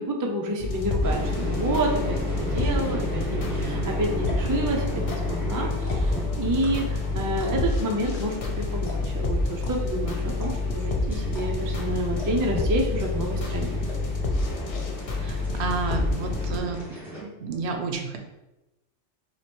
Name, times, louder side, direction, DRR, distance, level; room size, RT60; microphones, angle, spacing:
voice 1, 0.0-13.8, right 1 dB, 30° right, 0 dB, 0.3 m, -29 dB
sound 1, 0.6-16.6, left 3 dB, 50° left, 0.4 m, -28 dB
sound 2, 1.0-17.2, right 1 dB, ahead, 1.0 m, -36 dB
sound 3, 4.3-4.5 5.0-5.4 5.7-6.2 6.6-7.0 7.4-7.7 8.1-8.2 8.5-8.6 8.9-9.2 9.6-9.7 10.3-10.8 11.3-11.5 11.7-11.8 12.2-12.5 13.0-13.4 13.9-14.2 14.7-14.8 15.2-15.3 15.5-16.0 16.2-16.8, left 3 dB, 70° left, 1.1 m, -42 dB
voice 2, 15.2-16.8 17.2-18.2, right 4 dB, 70° right, 4 dB, 0.8 m, -31 dB
3.1 x 2.9 x 4.3 m, 1.0 s
omnidirectional pair, 1.2 m